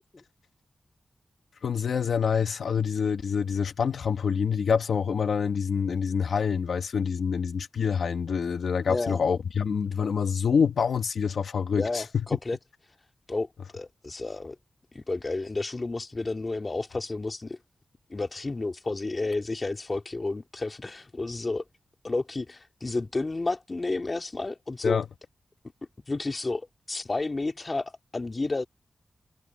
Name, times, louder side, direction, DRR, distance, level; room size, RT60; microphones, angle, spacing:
voice 1, 1.6-12.0 24.8-25.0, left 6 dB, 85° left, 1.7 m, -26 dB
voice 2, 8.9-9.2 11.8-12.6 13.3-13.5 13.7-14.6 14.9-17.6 18.1-21.6 22.0-25.0 26.1-28.7, left 3 dB, 40° left, 2.5 m, -31 dB
cardioid pair, 70°, 0 cm